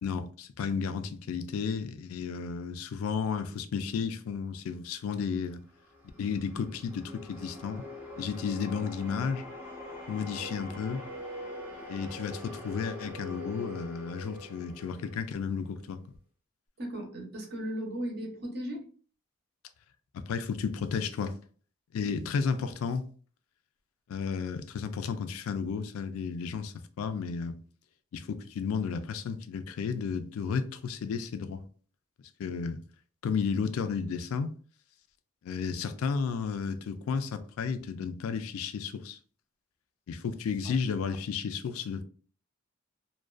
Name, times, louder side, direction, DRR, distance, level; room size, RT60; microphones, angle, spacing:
voice 1, 0.0-5.6 6.2-7.8 8.2-9.4 10.1-11.0 11.9-16.0 20.1-21.3 21.9-23.1 24.1-27.5 28.1-31.6 32.4-32.8 33.2-34.5 35.4-39.2 40.1-42.0, left 6 dB, 85° left, 0.3 m, -33 dB
sound 1, 5.5-15.8, left 1 dB, 10° right, 0.4 m, -44 dB
voice 2, 16.8-18.8 40.6-40.7, equal, 50° right, 0.7 m, -36 dB
2.4 x 2.2 x 2.3 m
head